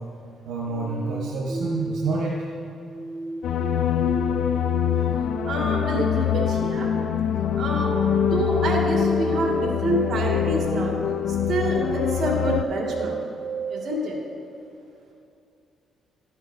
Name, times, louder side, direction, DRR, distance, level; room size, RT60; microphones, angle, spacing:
voice 1, 0.4-2.5, right 3 dB, 80° right, -4 dB, 1.3 m, -28 dB
sound 1, 0.7-13.9, right 2 dB, 30° right, 0.4 m, -32 dB
sound 2, 3.4-12.6, left 10 dB, 75° left, 0.4 m, -24 dB
voice 2, 5.4-6.9 7.6-10.9 11.3-13.2 13.7-14.2, right 1 dB, 55° right, -2 dB, 2.2 m, -27 dB
12.5 x 9.6 x 2.8 m, 2.5 s
cardioid pair, 90°, 0 cm